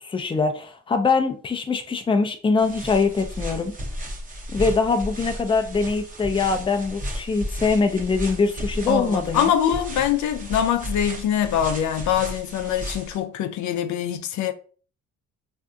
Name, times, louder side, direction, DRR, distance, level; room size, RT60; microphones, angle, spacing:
voice 1, 0.0-3.7 4.5-9.5, left 4 dB, 15° left, 0.5 m, -23 dB
sound 1, 2.6-13.2, equal, 25° right, 0.8 m, -34 dB
voice 2, 8.9-14.5, left 9 dB, 70° left, 0.5 m, -23 dB
3.4 x 2.6 x 2.3 m
cardioid pair, 90°, 30 cm